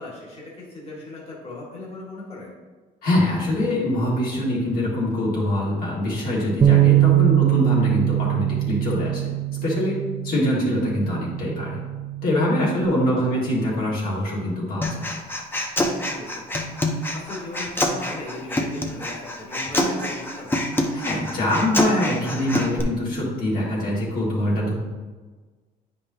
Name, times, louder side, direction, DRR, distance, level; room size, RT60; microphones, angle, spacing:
voice 1, 0.0-2.5 12.8-12.9 13.2-13.4 16.1-20.6, left 2 dB, 40° left, -4 dB, 2.2 m, -38 dB
voice 2, 3.0-9.3 9.6-11.8 12.2-15.1 20.9-24.7, left 1 dB, 60° left, -6 dB, 2.2 m, -24 dB
Bass guitar, 6.6-12.8, right 13 dB, 25° right, 0.4 m, -22 dB
Human voice, 14.8-22.8, left 1 dB, 10° left, 0.8 m, -26 dB
9.0 x 5.3 x 2.9 m, 1.3 s
cardioid pair, 110°, 17 cm